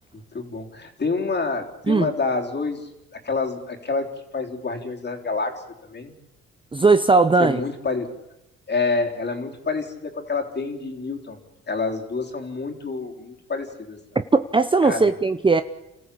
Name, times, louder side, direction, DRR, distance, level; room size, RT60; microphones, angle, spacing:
voice 1, 0.3-6.1 7.4-8.1 8.7-11.4 11.7-14.0 14.8-15.1, left 4 dB, 35° left, 2 dB, 3.8 m, -28 dB
voice 2, 6.7-7.6 14.3-15.6, right 4 dB, 15° right, 11 dB, 0.7 m, -18 dB
29.0 x 14.0 x 8.5 m, 0.92 s
cardioid pair, 90°, 30 cm